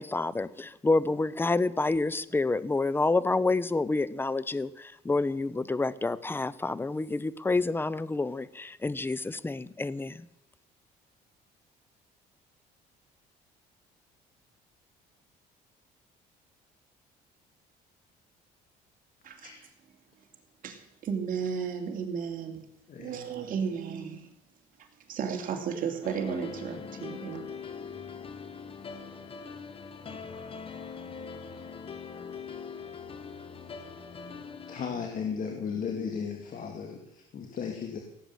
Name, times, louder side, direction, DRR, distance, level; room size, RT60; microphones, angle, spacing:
voice 1, 0.0-10.3, left 3 dB, 15° left, 18 dB, 0.7 m, -28 dB
voice 2, 20.6-22.6 23.0-24.3 25.1-27.5, right 6 dB, 55° right, 3 dB, 2.9 m, -34 dB
voice 3, 22.9-23.3 34.7-38.0, left 6 dB, 50° left, 2 dB, 2.3 m, -35 dB
sound 1, 26.0-34.9, left 5 dB, 30° left, 1.4 m, -42 dB
17.0 x 8.0 x 7.8 m, 0.81 s
cardioid pair, 110°, 17 cm